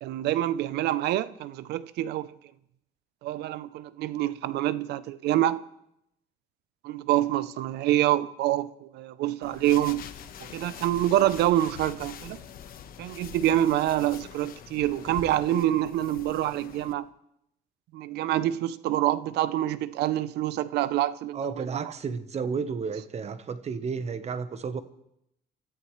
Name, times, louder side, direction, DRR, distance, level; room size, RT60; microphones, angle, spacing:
voice 1, 0.0-2.3 3.2-5.6 6.8-10.1 10.5-12.4 13.0-17.1 17.9-21.8, right 13 dB, 80° right, 0.7 m, -26 dB
sound 1, 9.4-16.9, left 8 dB, 60° left, 1.2 m, -44 dB
voice 2, 21.3-24.8, right 5 dB, 40° right, 1.1 m, -32 dB
29.0 x 13.5 x 3.2 m
cardioid pair, 110°, 17 cm